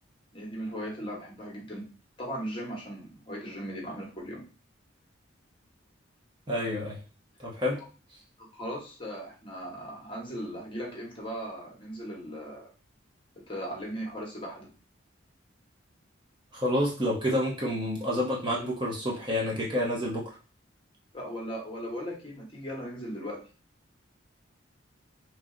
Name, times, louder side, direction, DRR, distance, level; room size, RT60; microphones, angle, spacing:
voice 1, 0.3-1.9 2.2-4.4 8.4-12.7 13.4-14.7 21.1-23.4, equal, 25° left, -2 dB, 1.1 m, -38 dB
voice 2, 6.5-7.0 7.4-7.8 16.5-20.2, left 1 dB, 25° right, -3 dB, 0.9 m, -28 dB
3.2 x 2.7 x 3.7 m, 0.34 s
head